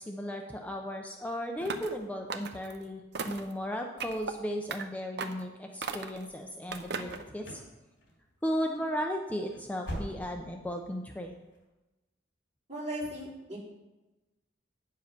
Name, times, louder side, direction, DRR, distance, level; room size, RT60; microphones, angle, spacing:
voice 1, 0.0-7.6 8.4-11.4, equal, 10° left, 2 dB, 0.6 m, -35 dB
sound 1, 1.6-2.0 2.3-2.8 3.1-3.5 4.0-4.3 4.7-4.8 5.2-5.4 5.8-6.2 6.7-7.2, right 4 dB, 65° right, 0.7 m, -37 dB
sound 2, 7.0-7.7 8.0-8.5 8.8-8.9 9.3-10.6 10.9-11.0 11.5-11.6, equal, 70° left, 3.3 m, -41 dB
voice 2, 12.7-13.6, equal, 40° right, -7 dB, 4.2 m, -37 dB
9.2 x 7.4 x 5.9 m, 1.1 s
head